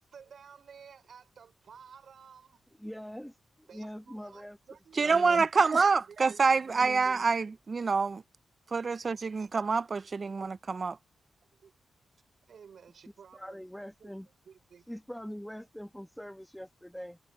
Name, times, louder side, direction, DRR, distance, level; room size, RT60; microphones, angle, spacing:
voice 1, 0.0-2.6 3.7-5.2 6.1-6.8 9.5-9.6 11.6-11.7 12.5-13.6 14.0-14.1 14.4-14.9, right 7 dB, 60° right, 5.2 m, -53 dB
voice 2, 2.8-4.6 5.0-5.8 6.7-7.3 13.3-14.3 14.9-17.2, equal, ahead, 1.5 m, -43 dB
voice 3, 5.0-8.2 8.7-11.0, right 4 dB, 35° right, 0.4 m, -26 dB
wide cardioid pair, 135°, 0 cm